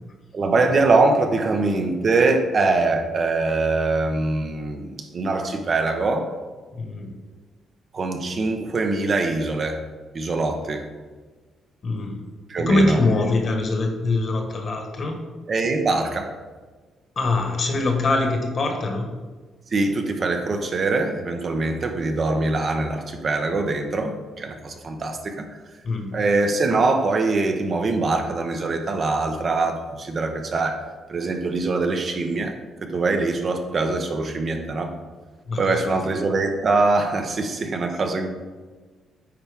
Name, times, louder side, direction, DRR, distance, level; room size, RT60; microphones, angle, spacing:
voice 1, 0.3-6.3 7.9-9.8 10.1-10.8 12.5-13.0 15.5-16.3 19.7-25.4 26.1-32.5 32.8-34.9 35.6-38.3, right 3 dB, 45° right, 5 dB, 0.8 m, -23 dB
voice 2, 6.7-7.1 11.8-12.2 12.6-15.2 17.2-19.0 25.8-26.2 35.5-36.1, left 2 dB, 50° left, 3 dB, 1.4 m, -23 dB
8.6 x 4.5 x 3.5 m, 1.3 s
cardioid pair, 90°, 0 cm